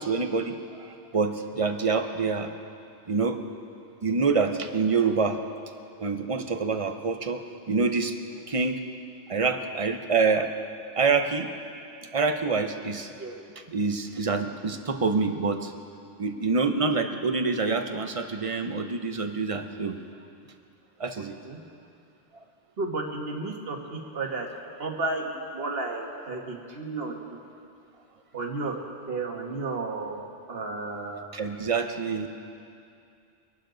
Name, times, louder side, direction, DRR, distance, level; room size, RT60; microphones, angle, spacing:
voice 1, 0.0-2.5 3.1-3.4 4.0-5.4 6.0-7.4 7.7-8.1 8.5-8.8 9.3-10.5 11.0-11.5 12.1-13.1 13.7-15.7 16.2-20.0 21.0-21.4 31.3-32.3, right 4 dB, 35° right, 6 dB, 0.8 m, -26 dB
voice 2, 21.2-21.6 22.8-24.5 24.8-27.1 28.3-28.7 29.1-30.2 30.5-31.3, right 3 dB, 55° right, 1 dB, 1.7 m, -32 dB
24.5 x 11.5 x 3.9 m, 2.5 s
omnidirectional pair, 1.2 m